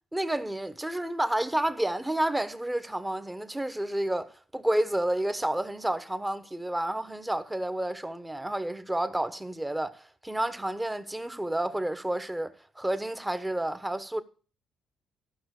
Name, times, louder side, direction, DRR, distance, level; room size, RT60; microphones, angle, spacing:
voice 1, 0.1-14.2, right 1 dB, 10° right, 1.1 m, -30 dB
14.0 x 5.7 x 6.5 m
cardioid pair, 90°, 0 cm